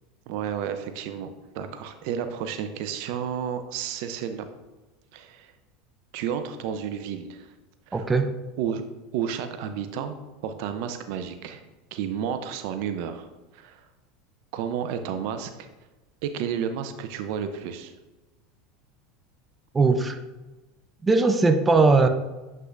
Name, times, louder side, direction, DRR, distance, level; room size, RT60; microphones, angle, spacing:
voice 1, 0.3-1.3 1.5-4.5 5.1-5.5 6.1-7.5 7.9-8.0 8.6-8.8 9.1-10.2 10.4-11.6 11.9-13.3 13.5-13.8 14.5-15.7 16.2-17.9, right 8 dB, 65° right, 9 dB, 0.5 m, -31 dB
voice 2, 7.9-8.3 19.7-20.2 21.0-22.1, right 3 dB, 20° right, 7 dB, 0.6 m, -19 dB
7.8 x 5.5 x 2.5 m, 1.1 s
hypercardioid pair, 90°, 0 cm